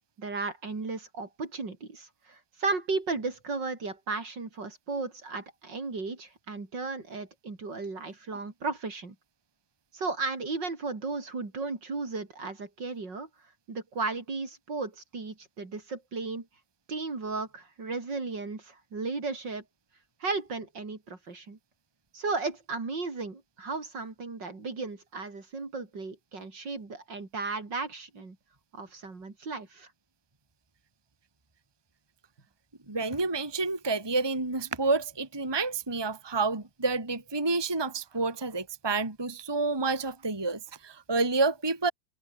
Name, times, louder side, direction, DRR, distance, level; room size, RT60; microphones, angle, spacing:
voice 1, 0.2-9.1 9.9-13.3 13.7-16.5 16.9-19.6 20.2-21.6 22.1-28.4 28.7-29.9, right 3 dB, 60° right, 4.5 m, -35 dB
voice 2, 32.9-41.9, right 3 dB, 10° right, 1.9 m, -29 dB
omnidirectional pair, 2.2 m